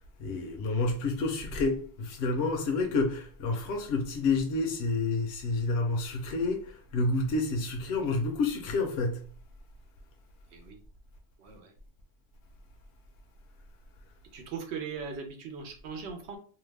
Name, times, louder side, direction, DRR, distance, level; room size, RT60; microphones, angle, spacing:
voice 1, 0.2-9.2, left 3 dB, 75° left, 0.8 m, -29 dB
voice 2, 11.4-11.7 14.3-16.4, right 5 dB, 80° right, 0.9 m, -39 dB
2.7 x 2.1 x 3.2 m
omnidirectional pair, 1.1 m